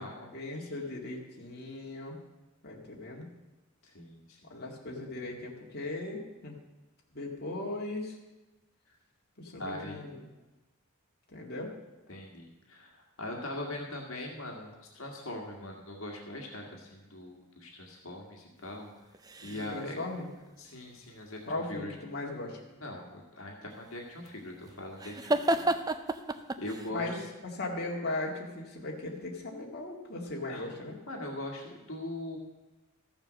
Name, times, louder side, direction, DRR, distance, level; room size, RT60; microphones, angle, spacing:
voice 1, 0.3-2.2 2.6-3.3 4.4-6.6 7.1-8.2 9.4-10.3 11.3-11.7 19.5-20.3 21.5-22.6 26.9-27.2 27.4-30.9, left 2 dB, 50° left, -2 dB, 2.0 m, -38 dB
voice 2, 3.8-4.5 8.9-9.0 9.6-10.0 12.1-19.2 19.4-20.0 20.6-21.4 21.7-21.9 22.8-26.0 26.6-27.1 30.5-30.6 31.1-32.4, left 1 dB, 70° left, 0 dB, 1.9 m, -41 dB
sound 1, 19.0-19.9 23.7-26.9, right 2 dB, 20° right, 0.5 m, -32 dB
14.0 x 7.3 x 6.4 m, 1.1 s
head